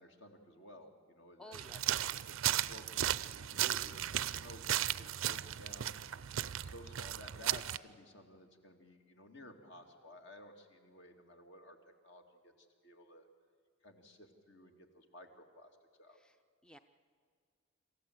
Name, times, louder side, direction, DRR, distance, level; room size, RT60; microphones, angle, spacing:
voice 1, 0.0-5.9 6.6-11.8 12.0-13.3 13.8-16.2, equal, 60° left, 4 dB, 2.2 m, -55 dB
voice 2, 1.4-1.9 16.1-16.4 16.6-16.8, left 1 dB, 5° left, 9 dB, 0.5 m, -54 dB
sound 1, 1.5-7.8, right 11 dB, 80° right, 0.5 m, -36 dB
27.0 x 14.5 x 7.9 m, 2.1 s
head